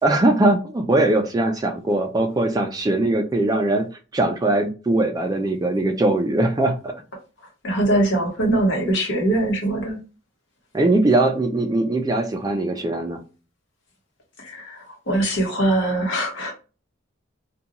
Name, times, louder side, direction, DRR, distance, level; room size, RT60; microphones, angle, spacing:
voice 1, 0.0-3.8 4.1-6.9 10.7-13.2, right 2 dB, 20° right, 5 dB, 0.3 m, -20 dB
voice 2, 7.6-10.0 14.4-16.5, right 1 dB, 65° left, 1 dB, 1.0 m, -22 dB
2.5 x 2.2 x 2.8 m, 0.33 s
head